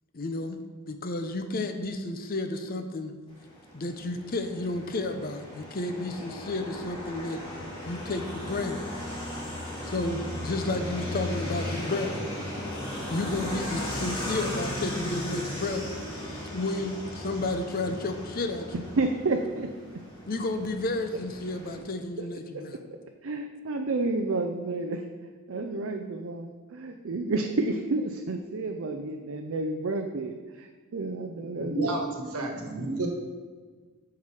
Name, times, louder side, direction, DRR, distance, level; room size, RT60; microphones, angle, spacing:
voice 1, 0.1-0.6 0.9-3.1 3.7-7.4 7.8-8.8 9.8-12.2 13.1-15.8 16.5-18.9 20.3-22.8, left 2 dB, 40° left, 7 dB, 0.6 m, -32 dB
sound 1, 3.4-21.8, left 1 dB, 25° left, 2.3 m, -36 dB
voice 2, 19.0-19.7 22.2-22.3 23.2-25.0 25.5-32.0 32.8-33.0, right 3 dB, 60° right, 4 dB, 0.5 m, -30 dB
voice 3, 31.4-33.1, right 2 dB, 85° right, 2 dB, 1.4 m, -31 dB
7.3 x 5.9 x 4.8 m, 1.4 s
head